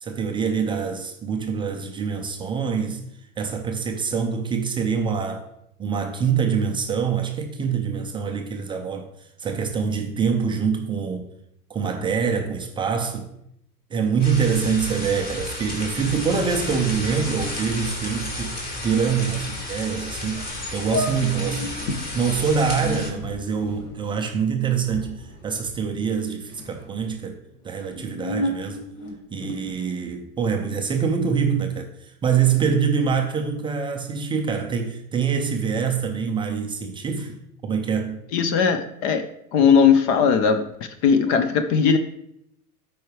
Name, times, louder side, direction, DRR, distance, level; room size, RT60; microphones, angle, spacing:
voice 1, 0.0-3.0 3.4-5.5 5.8-11.3 11.7-13.3 13.9-18.6 18.8-20.5 20.7-21.7 22.1-27.4 27.6-28.8 29.3-38.2, right 6 dB, 10° right, 0.4 m, -25 dB
sound 1, 14.2-23.1, left 2 dB, 20° left, 2.0 m, -32 dB
sound 2, 20.3-20.4 20.9-22.0 22.7-26.2 26.5-27.1 27.7-29.7, left 1 dB, 70° left, 2.0 m, -32 dB
voice 2, 38.3-39.2 39.5-40.6 41.0-42.0, left 6 dB, 45° left, 0.7 m, -18 dB
12.5 x 4.6 x 3.2 m
hypercardioid pair, 105°, 45 cm